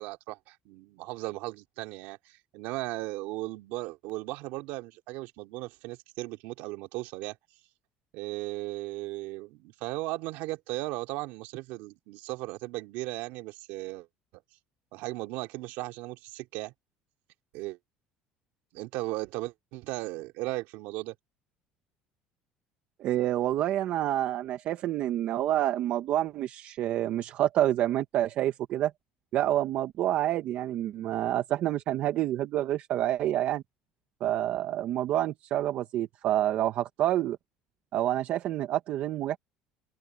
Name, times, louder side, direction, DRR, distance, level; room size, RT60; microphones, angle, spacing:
voice 1, 0.0-7.4 8.1-14.1 14.3-14.4 14.9-16.7 17.5-17.8 18.7-21.1, right 19 dB, 75° right, 3.0 m, -36 dB
voice 2, 23.0-28.9 29.3-33.6 34.2-37.4 37.9-39.4, right 13 dB, 55° right, 1.1 m, -28 dB
open air
cardioid pair, 125°, 3 cm